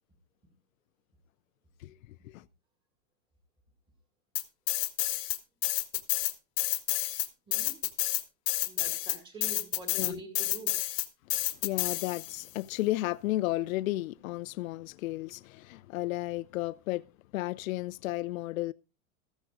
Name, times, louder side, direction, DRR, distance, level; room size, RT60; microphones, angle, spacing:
sound 1, 4.4-5.4 5.6-12.5, left 18 dB, 40° left, 1.1 m, -30 dB
voice 1, 7.5-7.8 8.6-10.7, right 3 dB, 10° right, 2.2 m, -46 dB
voice 2, 9.9-10.2 11.3-17.1 17.3-18.7, left 17 dB, 80° left, 0.5 m, -33 dB
14.5 x 14.0 x 2.5 m
supercardioid pair, 170°, 41 cm